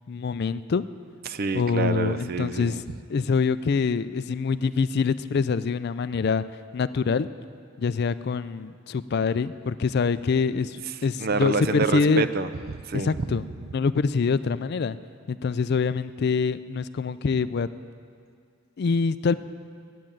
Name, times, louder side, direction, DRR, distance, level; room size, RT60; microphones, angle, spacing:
voice 1, 0.1-0.8 1.5-2.8 3.1-6.4 6.7-7.3 7.8-12.3 13.0-13.4 13.7-15.0 15.3-17.7 18.8-19.4, left 5 dB, 50° left, 14 dB, 0.3 m, -25 dB
voice 2, 1.2-2.8 10.9-13.3 13.6-13.7, right 4 dB, 45° right, 13 dB, 0.4 m, -28 dB
12.0 x 8.6 x 9.1 m, 2.2 s
head